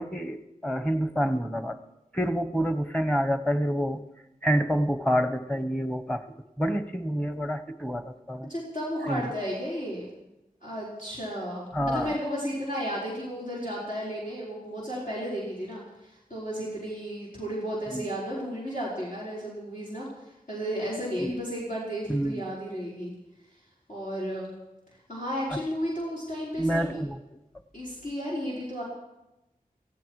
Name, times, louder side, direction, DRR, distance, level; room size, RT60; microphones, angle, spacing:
voice 1, 0.0-1.8 2.1-4.0 4.4-8.5 9.1-9.3 11.7-12.2 17.9-18.1 21.2-21.4 22.1-22.5 25.5-25.6 26.6-27.2, equal, 5° left, 10 dB, 1.0 m, -28 dB
voice 2, 8.5-10.0 10.6-20.1 20.5-23.1 23.9-24.5 25.1-27.0 27.7-28.8, equal, 70° left, -8 dB, 5.3 m, -33 dB
17.5 x 15.5 x 4.9 m, 0.98 s
wide cardioid pair, 50°, 15 cm